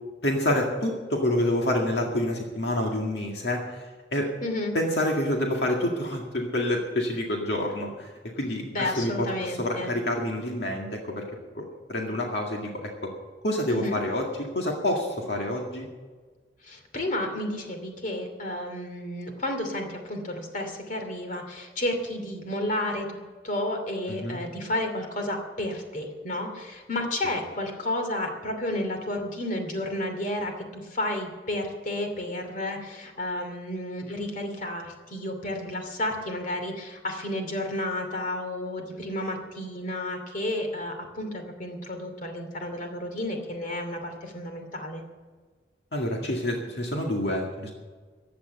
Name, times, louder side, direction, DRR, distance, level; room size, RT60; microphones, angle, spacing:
voice 1, 0.2-4.3 4.7-8.1 8.4-11.2 11.5-13.1 13.4-15.9 24.1-24.4 45.9-47.7, left 1 dB, 70° left, 0 dB, 2.1 m, -28 dB
voice 2, 4.4-4.8 8.7-9.9 13.7-14.0 16.6-45.0, left 1 dB, 50° left, 4 dB, 2.6 m, -31 dB
15.5 x 10.5 x 6.7 m, 1.4 s
head